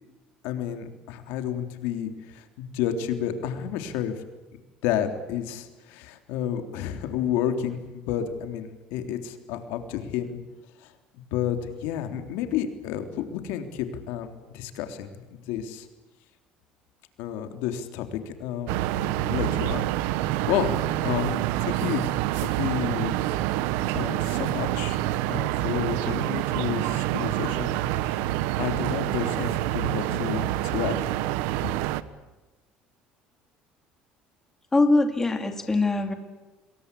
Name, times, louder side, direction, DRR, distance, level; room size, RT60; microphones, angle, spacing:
voice 1, 0.4-4.2 4.8-10.4 10.8-10.9 11.3-15.9 17.2-19.9 20.5-22.1 22.3-23.2 23.9-25.0 25.3-27.8 28.0-28.2 28.6-31.3, left 9 dB, 80° left, 7 dB, 3.5 m, -31 dB
sound 1, 18.7-32.0, right 14 dB, 90° right, 1.2 m, -27 dB
voice 2, 34.7-36.1, left 2 dB, 10° left, 6 dB, 2.7 m, -22 dB
28.0 x 22.5 x 8.4 m, 1.1 s
cardioid pair, 145°, 3 cm